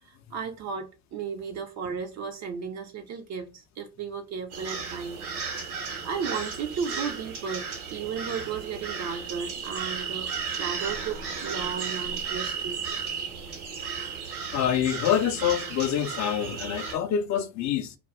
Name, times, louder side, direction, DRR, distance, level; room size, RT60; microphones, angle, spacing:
voice 1, 0.0-5.2 5.7-12.8, right 6 dB, 40° right, 0.5 m, -35 dB
sound 1, 4.5-16.9, right 6 dB, 85° right, 1.0 m, -34 dB
voice 2, 14.5-18.0, left 9 dB, 40° left, 0.5 m, -26 dB
2.4 x 2.2 x 3.4 m
hypercardioid pair, 60°, 43 cm